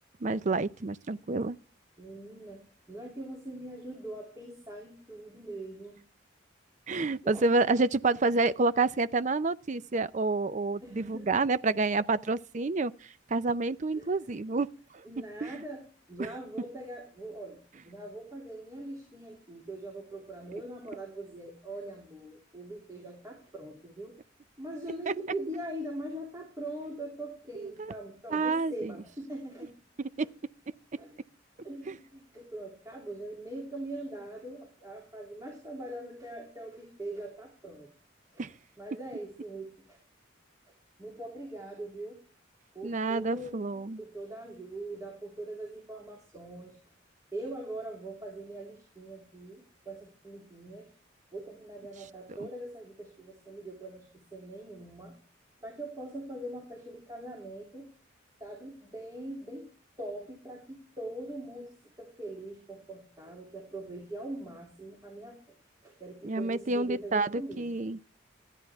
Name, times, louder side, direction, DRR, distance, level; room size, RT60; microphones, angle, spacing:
voice 1, 0.2-1.6 6.9-14.7 14.9-15.0 15.4-15.5 25.1-25.2 27.8-27.9 28.3-28.9 30.0-30.3 31.9-32.0 38.4-38.5 42.8-44.0 66.2-68.0, right 3 dB, 40° right, 0.5 m, -28 dB
voice 2, 2.0-2.6 2.9-6.0 7.2-7.5 10.8-11.5 13.9-14.2 15.0-15.8 16.1-24.1 24.6-29.7 31.0-31.1 31.6-37.9 38.3-38.5 38.8-40.0 41.0-42.2 42.7-43.6 44.0-46.8 47.3-50.9 51.3-55.1 55.6-57.9 58.4-59.7 60.0-65.6 65.8-67.7, right 1 dB, 15° right, 2.9 m, -42 dB
14.5 x 10.0 x 3.5 m
head